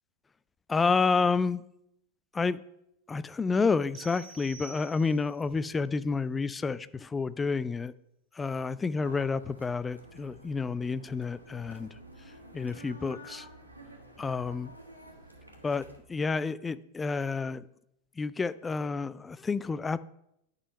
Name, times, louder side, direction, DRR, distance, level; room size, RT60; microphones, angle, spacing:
voice 1, 0.7-1.6 2.3-2.6 3.1-7.9 8.3-11.9 12.5-13.5 14.2-14.7 15.6-17.7 18.2-20.0, left 4 dB, 15° left, 0.3 m, -29 dB
sound 1, 3.9-5.5, right 6 dB, 50° right, 1.1 m, -49 dB
sound 2, 9.0-16.0, right 1 dB, 85° right, 1.6 m, -51 dB
9.8 x 5.3 x 5.3 m
figure-of-eight pair, 90°, 0 cm